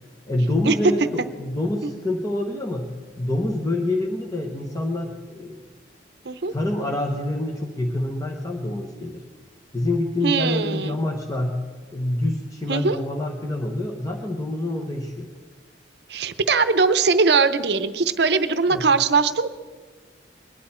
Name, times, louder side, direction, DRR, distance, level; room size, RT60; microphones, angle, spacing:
voice 1, 0.3-1.0 1.4-2.9 3.2-5.6 6.5-9.2 9.7-11.6 11.9-15.3 18.7-18.9, left 1 dB, 20° left, 1 dB, 0.9 m, -26 dB
voice 2, 10.2-11.0 12.7-13.0 16.1-19.5, right 4 dB, 65° right, 12 dB, 0.7 m, -20 dB
21.5 x 10.0 x 4.3 m, 1.4 s
head